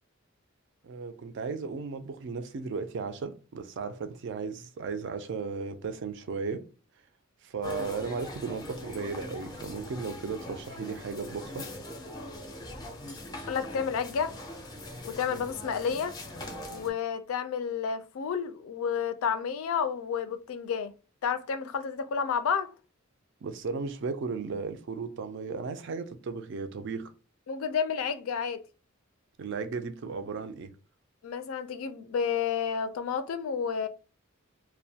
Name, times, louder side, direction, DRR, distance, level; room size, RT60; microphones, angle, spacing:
voice 1, 0.8-6.6 7.4-11.7 23.4-27.1 29.4-30.7, right 4 dB, 60° right, 0.4 m, -35 dB
sound 1, 7.6-16.9, left 1 dB, 20° left, 0.4 m, -41 dB
voice 2, 13.5-14.3 15.0-16.2 16.7-20.9 21.2-22.7 27.5-28.6 31.2-33.9, left 6 dB, 90° left, 0.4 m, -30 dB
2.2 x 2.1 x 2.6 m
head